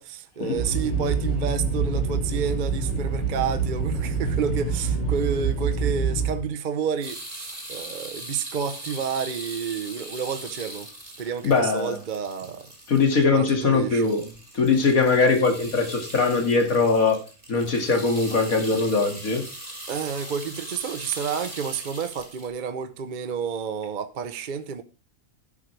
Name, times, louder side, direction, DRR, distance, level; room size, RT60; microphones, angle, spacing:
voice 1, 0.0-10.9 11.2-12.7 13.3-14.1 19.9-24.8, right 7 dB, 45° right, 0.8 m, -30 dB
sound 1, 0.5-6.4, right 4 dB, 20° left, 6.4 m, -26 dB
sound 2, 7.0-13.3 13.6-22.5, right 1 dB, 25° right, 4.2 m, -40 dB
voice 2, 11.4-12.0 12.9-14.3 14.5-17.2 17.5-19.5, left 4 dB, 90° left, 2.6 m, -21 dB
12.0 x 8.8 x 3.3 m
omnidirectional pair, 1.4 m